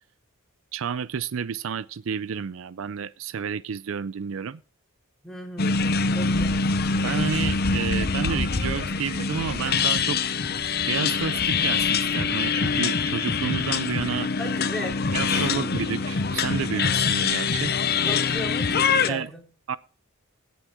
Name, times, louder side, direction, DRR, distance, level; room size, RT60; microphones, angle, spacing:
voice 1, 0.7-4.6 7.0-10.2 10.9-14.3 15.1-17.7 19.1-19.3 19.7-19.8, right 6 dB, 65° right, 0.4 m, -30 dB
voice 2, 5.2-6.8 14.4-15.1 15.3-15.7 18.0-19.5, left 1 dB, ahead, 3.0 m, -36 dB
sound 1, 5.6-19.1, left 5 dB, 45° left, 0.8 m, -24 dB
17.0 x 7.2 x 3.6 m
head